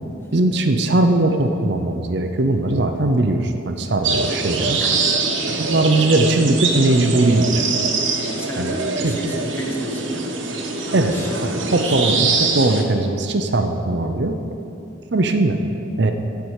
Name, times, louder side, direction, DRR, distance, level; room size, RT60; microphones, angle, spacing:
voice 1, 0.3-4.8 5.4-7.7 8.6-8.7 9.0-9.1 10.9-11.2 11.4-14.4 15.1-15.6 16.0-16.1, right 2 dB, 55° right, 6 dB, 0.7 m, -19 dB
voice 2, 4.0-4.4 4.8-5.1 8.4-11.9 12.4-12.5, equal, 10° left, 1 dB, 1.0 m, -33 dB
sound 1, 4.0-12.8, right 4 dB, 75° right, 1.2 m, -23 dB
13.5 x 4.6 x 8.2 m, 2.8 s
head